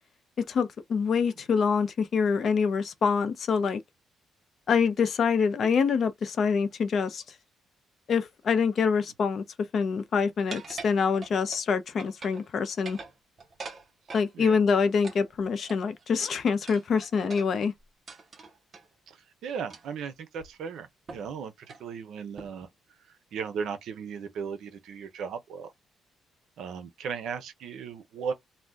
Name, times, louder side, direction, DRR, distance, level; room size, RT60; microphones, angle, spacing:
voice 1, 0.5-3.8 4.7-7.2 8.1-9.4 9.7-13.0 14.1-17.7, left 5 dB, 45° left, 0.6 m, -25 dB
sound 1, 10.5-11.7 12.0-12.5 12.7-14.3 15.0-16.0 16.7-18.9 19.7-20.0 20.4-20.5 21.1-21.3 21.6-21.9 22.4-22.7, right 4 dB, 35° right, 0.6 m, -44 dB
voice 2, 19.1-22.7 23.1-25.7 26.6-28.3, right 6 dB, 70° right, 0.6 m, -36 dB
2.6 x 2.2 x 3.4 m
cardioid pair, 140°, 0 cm